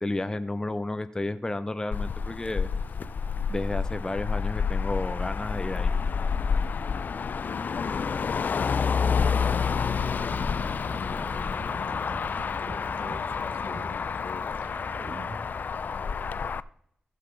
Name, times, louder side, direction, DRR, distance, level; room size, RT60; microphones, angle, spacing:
voice 1, 0.0-2.7 3.5-5.9, left 2 dB, 20° left, 10 dB, 0.6 m, -32 dB
Motor vehicle (road), 1.9-16.6, left 6 dB, 60° left, 0.3 m, -29 dB
voice 2, 7.4-8.8 9.8-12.2 12.5-14.6 16.0-16.4, left 5 dB, 75° left, 9 dB, 1.1 m, -44 dB
sound 1, 9.9-15.5, right 3 dB, 55° right, 1.3 m, -43 dB
15.0 x 6.7 x 3.9 m, 0.72 s
wide cardioid pair, 90°, 3 cm